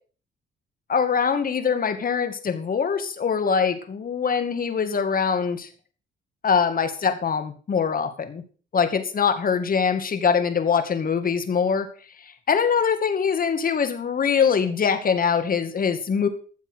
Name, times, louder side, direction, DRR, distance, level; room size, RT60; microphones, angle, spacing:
voice 1, 0.9-5.7 6.4-8.4 8.7-11.9 12.2-16.3, left 6 dB, 45° left, 9 dB, 2.2 m, -23 dB
14.0 x 7.3 x 6.4 m, 0.40 s
cardioid pair, 90°, 20 cm